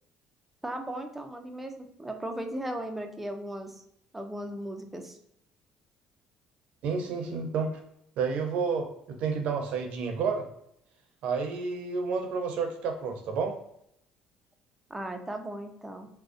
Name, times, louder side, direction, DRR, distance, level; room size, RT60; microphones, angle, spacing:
voice 1, 0.6-3.8 4.1-5.2 14.9-16.1, right 1 dB, 10° right, 5 dB, 0.4 m, -37 dB
voice 2, 6.8-7.7 8.2-10.5 11.2-13.6, right 5 dB, 70° right, 4 dB, 0.5 m, -30 dB
2.4 x 2.0 x 2.5 m, 0.75 s
cardioid pair, 95°, 2 cm